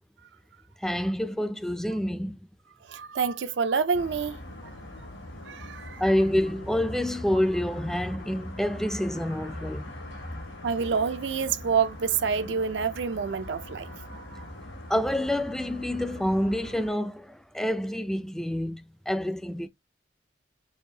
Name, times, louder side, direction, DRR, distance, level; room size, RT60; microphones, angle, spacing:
voice 1, 0.8-2.4 6.0-9.9 14.9-19.7, left 1 dB, ahead, 0.3 m, -27 dB
voice 2, 2.8-4.7 5.5-6.0 10.6-14.5, right 6 dB, 65° right, 0.5 m, -28 dB
sound 1, 3.9-16.9, left 1 dB, 90° left, 2.3 m, -42 dB
6.4 x 2.6 x 2.7 m
head